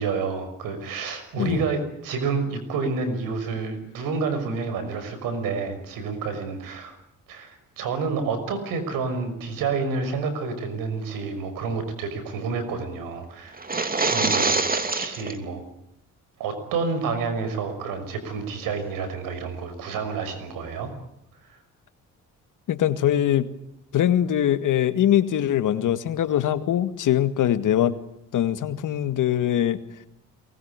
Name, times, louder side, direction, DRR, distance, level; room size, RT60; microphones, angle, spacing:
voice 1, 0.0-7.0 7.3-13.8 14.0-15.6 16.4-20.9 21.4-21.6, right 4 dB, 85° right, 10 dB, 6.0 m, -29 dB
sound 1, 13.6-15.4, right 3 dB, 25° right, 2.9 m, -24 dB
voice 2, 22.7-23.5 23.9-28.0 28.3-29.8, left 11 dB, 70° left, 11 dB, 2.1 m, -22 dB
23.0 x 20.5 x 9.9 m, 0.80 s
supercardioid pair, 70°, 33 cm